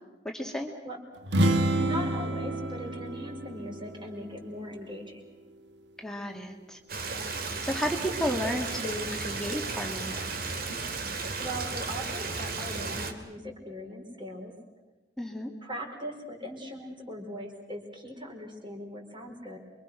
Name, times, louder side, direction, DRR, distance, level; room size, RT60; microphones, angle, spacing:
voice 1, 0.2-0.7 6.0-6.8 7.6-10.2 15.2-15.5, equal, 5° left, 1 dB, 2.3 m, -32 dB
sound 1, 1.2-5.0, right 1 dB, 75° right, 1.6 m, -29 dB
voice 2, 1.8-5.2 11.4-14.5 15.6-19.6, equal, 30° right, 2 dB, 4.8 m, -39 dB
Stream, 6.9-13.1, right 4 dB, 60° right, 2.5 m, -34 dB
28.0 x 24.5 x 6.4 m, 1.2 s
head